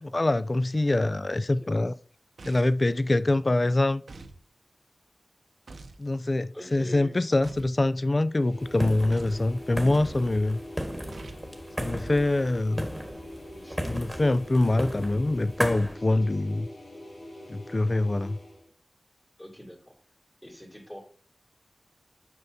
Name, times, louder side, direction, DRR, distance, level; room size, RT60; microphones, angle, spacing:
voice 1, 0.0-1.9 2.4-4.0 6.0-10.6 11.8-12.9 13.9-16.7 17.5-18.4, left 2 dB, 45° left, 0.4 m, -24 dB
voice 2, 1.0-1.7 6.5-7.3 13.5-14.2 16.1-16.4 19.4-20.0 20.4-21.0, equal, 20° left, 2.7 m, -45 dB
sound 1, 2.4-2.9 4.1-4.4 5.7-6.0 7.4-7.8 9.1-9.5 11.1-11.5, right 3 dB, 85° right, 0.6 m, -45 dB
sound 2, 8.2-18.7, left 1 dB, 80° left, 1.6 m, -44 dB
sound 3, 8.6-15.9, equal, 10° right, 1.5 m, -36 dB
7.6 x 5.7 x 2.7 m
cardioid pair, 40°, 0 cm